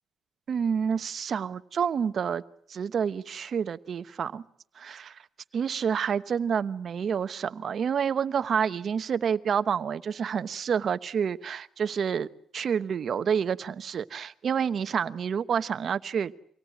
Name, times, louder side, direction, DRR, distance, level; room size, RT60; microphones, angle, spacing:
voice 1, 0.5-2.4 2.7-4.4 4.8-5.1 5.5-12.3 12.5-16.4, right 7 dB, 55° right, 13 dB, 1.0 m, -28 dB
25.0 x 18.0 x 9.2 m, 0.67 s
cardioid pair, 90°, 0 cm